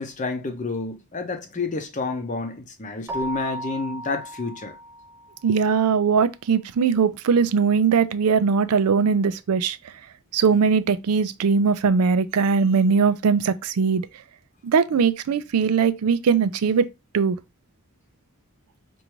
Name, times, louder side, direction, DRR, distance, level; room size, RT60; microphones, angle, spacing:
voice 1, 0.0-4.8, left 3 dB, 35° left, 0.6 m, -29 dB
Keyboard (musical), 3.1-5.5, right 1 dB, 10° right, 0.5 m, -35 dB
voice 2, 5.4-9.8 10.3-14.0 14.6-16.9 17.1-17.4, right 5 dB, 85° right, 0.4 m, -20 dB
4.6 x 2.6 x 2.9 m
head